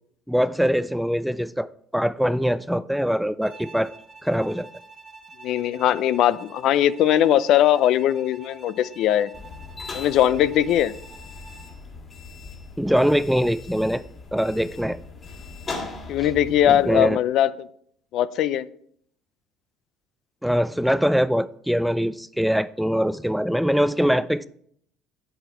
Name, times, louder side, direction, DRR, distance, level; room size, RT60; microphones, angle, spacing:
voice 1, 0.3-3.9 4.2-4.7 12.8-14.0 14.3-15.0 16.2-16.3 16.6-17.2 20.4-24.5, equal, ahead, 0.3 m, -23 dB
Bowed string instrument, 3.4-11.8, right 3 dB, 30° right, 1.5 m, -47 dB
voice 2, 5.4-9.3 9.9-10.9 16.1-17.7 18.1-18.7, left 11 dB, 65° left, 0.4 m, -20 dB
sound 1, 9.3-17.0, left 3 dB, 35° left, 2.3 m, -39 dB
9.0 x 8.0 x 4.5 m
cardioid pair, 110°, 0 cm